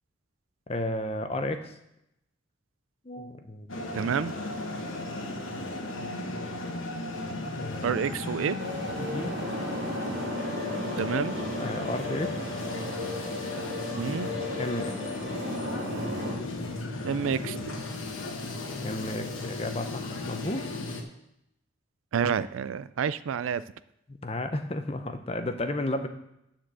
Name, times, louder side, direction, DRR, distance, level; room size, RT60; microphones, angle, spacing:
voice 1, 0.7-1.7 3.0-3.7 7.6-8.0 9.0-9.4 11.6-12.4 14.6-14.9 18.8-20.6 24.1-26.1, left 1 dB, 30° left, 7 dB, 0.7 m, -33 dB
sound 1, 3.7-21.0, left 2 dB, 85° left, 1.3 m, -36 dB
voice 2, 3.9-4.3 7.8-8.6 11.0-11.4 14.0-14.3 17.0-17.6 22.1-23.6, right 7 dB, 80° right, 16 dB, 0.4 m, -28 dB
sound 2, 8.6-16.3, left 1 dB, 55° right, 2.0 m, -35 dB
9.5 x 4.4 x 7.4 m, 0.82 s
head